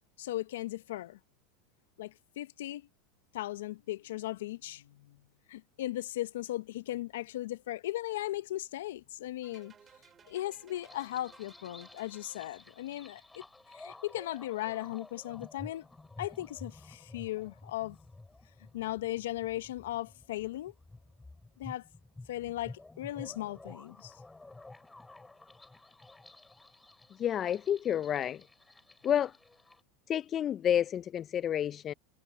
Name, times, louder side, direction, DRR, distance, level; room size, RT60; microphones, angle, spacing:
voice 1, 0.2-1.2 2.0-2.9 3.3-5.2 5.5-9.7 10.3-13.4 13.7-15.8 16.2-18.0 18.7-20.7 21.6-21.8 22.3-24.2, left 15 dB, 80° left, 1.0 m, -37 dB
sound 1, 9.4-12.9, right 7 dB, 25° right, 7.0 m, -60 dB
sound 2, 10.8-29.8, left 2 dB, 10° left, 5.6 m, -52 dB
voice 2, 27.1-28.4 29.0-29.3 30.1-31.9, left 10 dB, 35° left, 0.4 m, -30 dB
hypercardioid pair, 105°, 0 cm